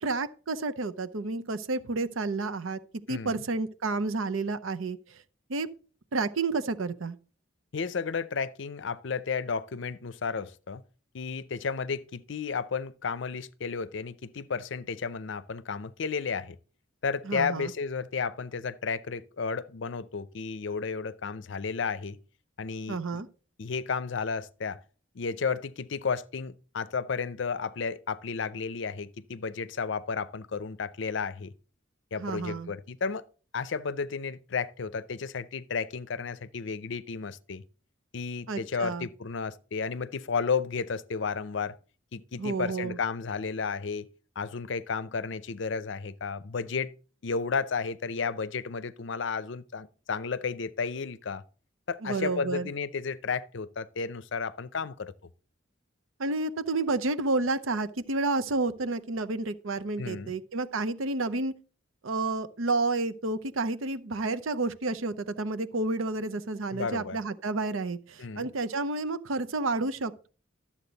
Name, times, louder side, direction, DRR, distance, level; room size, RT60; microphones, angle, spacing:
voice 1, 0.0-2.8 3.1-5.0 5.5-5.7 6.1-7.2 17.2-17.7 22.9-23.3 32.2-32.7 38.5-39.1 42.4-43.0 52.0-52.7 56.2-61.5 62.0-70.3, right 3 dB, 85° right, 0.7 m, -30 dB
voice 2, 3.1-3.4 7.7-10.8 11.1-16.6 17.0-22.2 22.6-23.2 23.6-24.8 25.2-31.5 32.1-33.3 33.5-37.6 38.1-41.8 42.1-44.1 44.4-46.9 47.2-51.4 51.9-55.1 60.0-60.3 66.7-67.2 68.2-68.5, left 5 dB, 65° left, 0.5 m, -33 dB
12.0 x 7.4 x 4.0 m
head